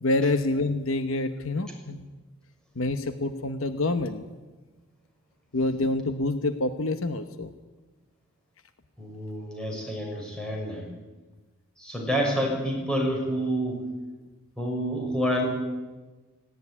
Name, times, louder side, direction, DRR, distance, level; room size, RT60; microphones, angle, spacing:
voice 1, 0.0-2.1 2.7-4.2 5.5-7.5, left 2 dB, 65° left, 9 dB, 1.0 m, -27 dB
voice 2, 9.0-10.9 11.8-13.8 14.6-15.4, equal, 5° left, -1 dB, 6.1 m, -28 dB
18.0 x 17.0 x 9.9 m, 1.2 s
head